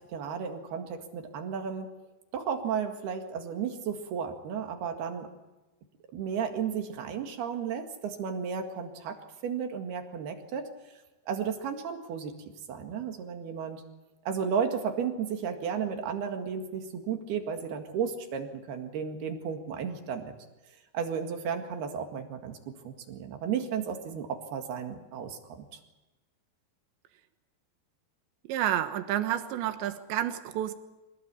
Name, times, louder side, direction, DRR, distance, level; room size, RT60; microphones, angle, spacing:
voice 1, 0.1-1.9 2.3-5.3 6.1-9.2 9.4-10.7 11.3-12.4 12.7-13.8 14.3-20.3 20.9-25.7, right 7 dB, 65° right, 5 dB, 3.7 m, -33 dB
voice 2, 28.5-30.7, right 11 dB, 90° right, 9 dB, 3.6 m, -30 dB
26.0 x 18.5 x 8.6 m, 1.1 s
omnidirectional pair, 5.1 m